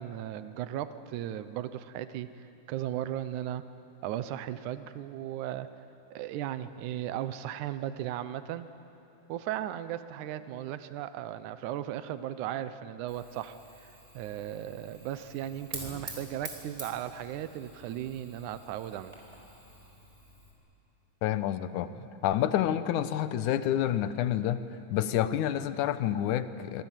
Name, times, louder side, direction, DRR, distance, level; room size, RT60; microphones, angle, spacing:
voice 1, 0.0-3.6 4.0-5.7 6.1-8.7 9.3-19.1 22.0-22.1, right 11 dB, 75° right, 12 dB, 2.3 m, -36 dB
Fire, 13.1-20.5, right 1 dB, 10° right, 4.4 m, -47 dB
voice 2, 21.2-21.9 22.2-24.6 24.9-26.8, left 11 dB, 80° left, 12 dB, 2.3 m, -28 dB
26.0 x 24.5 x 7.5 m, 2.8 s
omnidirectional pair, 3.7 m